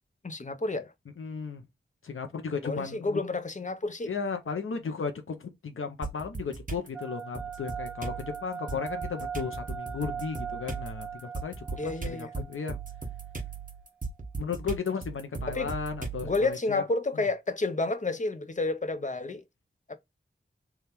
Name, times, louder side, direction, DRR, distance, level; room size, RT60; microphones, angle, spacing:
voice 1, 0.2-0.9 2.6-4.1 11.8-12.3 15.5-15.7 16.2-19.4 19.9-20.0, left 3 dB, 35° left, 0.6 m, -30 dB
voice 2, 1.2-1.7 2.0-3.2 4.1-12.8 14.4-16.8, left 5 dB, 90° left, 0.6 m, -35 dB
sound 1, 6.0-6.9 7.3-16.5, right 4 dB, 40° right, 1.1 m, -38 dB
sound 2, 6.9-13.6, right 7 dB, 5° right, 0.5 m, -40 dB
3.4 x 2.3 x 4.3 m
wide cardioid pair, 70°, 21 cm